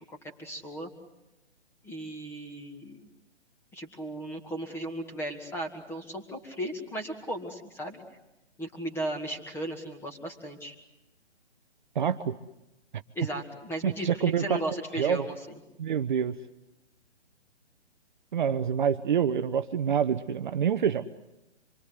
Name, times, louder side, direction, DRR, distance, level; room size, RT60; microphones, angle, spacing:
voice 1, 0.1-0.9 1.8-3.1 3.7-8.0 8.6-10.7 13.1-15.4, right 1 dB, 5° left, 4 dB, 2.2 m, -36 dB
voice 2, 11.9-12.4 13.8-14.6 15.0-15.3 15.8-16.4 18.3-21.1, right 8 dB, 45° right, 9 dB, 0.9 m, -26 dB
26.0 x 23.0 x 8.1 m, 0.94 s
figure-of-eight pair, 140°, 34 cm